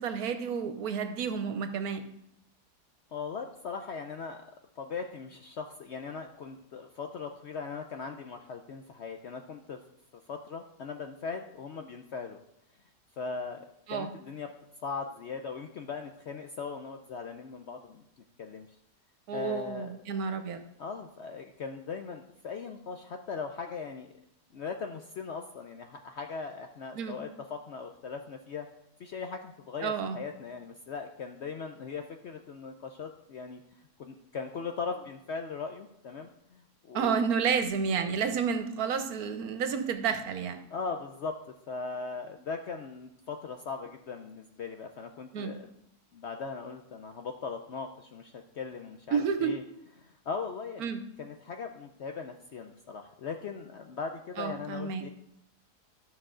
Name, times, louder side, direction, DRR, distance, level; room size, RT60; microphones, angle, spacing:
voice 1, 0.0-2.0 13.9-14.1 19.3-20.6 26.9-27.2 29.8-30.2 36.9-40.6 45.3-45.5 49.1-49.5 50.8-51.0 54.4-55.0, right 6 dB, 70° right, 9 dB, 1.2 m, -30 dB
voice 2, 3.1-4.4 4.8-9.8 10.3-12.4 13.2-13.6 13.9-14.5 14.8-18.0 18.4-18.7 19.3-19.9 20.8-24.1 24.5-28.7 29.0-33.6 34.0-37.2 40.7-41.4 41.7-45.7 46.1-49.6 50.0-50.9 51.2-55.1, left 5 dB, 65° left, 5 dB, 0.7 m, -39 dB
12.0 x 6.1 x 3.8 m, 0.82 s
omnidirectional pair, 1.7 m